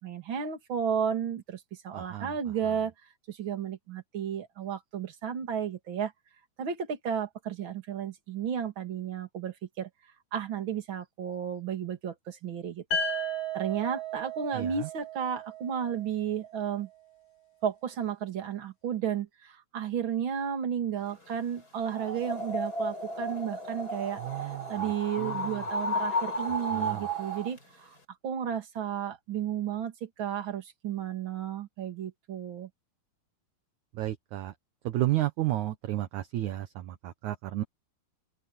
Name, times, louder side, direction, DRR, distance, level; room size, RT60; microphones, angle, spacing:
voice 1, 0.0-2.9 3.3-6.1 6.6-9.9 10.3-12.8 13.5-16.9 17.6-28.0 28.2-32.7, right 8 dB, 35° right, 2.5 m, -33 dB
voice 2, 1.9-2.3 14.5-14.9 24.2-24.7 25.2-25.6 26.7-27.1 33.9-34.5 34.9-37.6, right 15 dB, 70° right, 1.9 m, -32 dB
sound 1, 12.9-16.8, right 2 dB, 75° left, 7.1 m, -35 dB
sound 2, 21.8-27.6, right 1 dB, 25° left, 5.3 m, -33 dB
open air
omnidirectional pair, 4.6 m